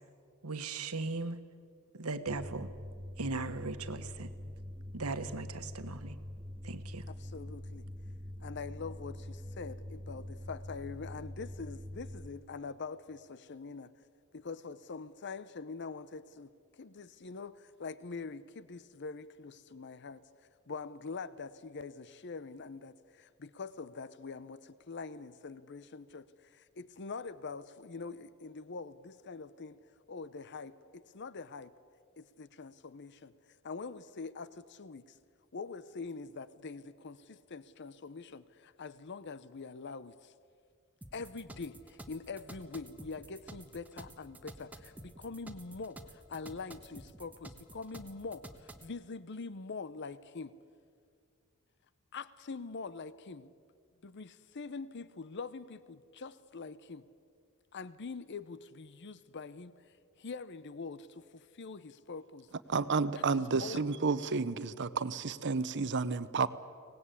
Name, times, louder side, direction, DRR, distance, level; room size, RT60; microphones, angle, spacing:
voice 1, 0.4-1.4 2.0-2.7 3.2-4.3 4.9-6.2 6.6-7.0, right 3 dB, 90° right, 9 dB, 1.4 m, -38 dB
sound 1, 2.3-12.3, left 1 dB, 25° right, 2.5 m, -44 dB
voice 2, 7.1-7.9 8.4-13.9 14.3-29.8 30.1-31.7 32.2-33.3 33.6-35.2 35.5-40.3 41.1-50.5 52.1-53.5 54.0-57.1 57.7-62.5 63.1-63.2 63.6-63.8, left 4 dB, 55° left, 15 dB, 0.7 m, -44 dB
sound 2, 41.0-48.9, right 1 dB, 5° right, 1.3 m, -50 dB
voice 3, 62.7-66.5, right 4 dB, 55° right, 15 dB, 0.8 m, -31 dB
24.5 x 19.0 x 8.4 m, 2.2 s
head